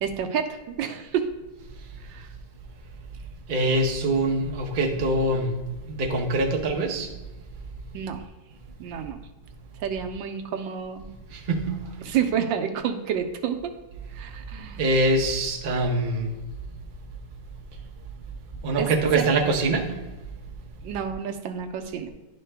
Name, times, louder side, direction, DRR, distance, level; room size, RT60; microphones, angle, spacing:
voice 1, 0.0-1.3 2.1-2.3 7.9-8.2 8.8-9.2 9.8-11.1 12.0-13.7 14.1-14.8 18.8-18.9 19.1-19.2 20.8-22.1, right 8 dB, 80° right, 6 dB, 1.3 m, -29 dB
voice 2, 3.5-5.6 5.9-7.1 11.3-11.9 14.8-16.4 18.6-19.9, right 2 dB, 45° right, 1 dB, 0.6 m, -24 dB
11.0 x 3.8 x 3.3 m, 1.1 s
omnidirectional pair, 2.0 m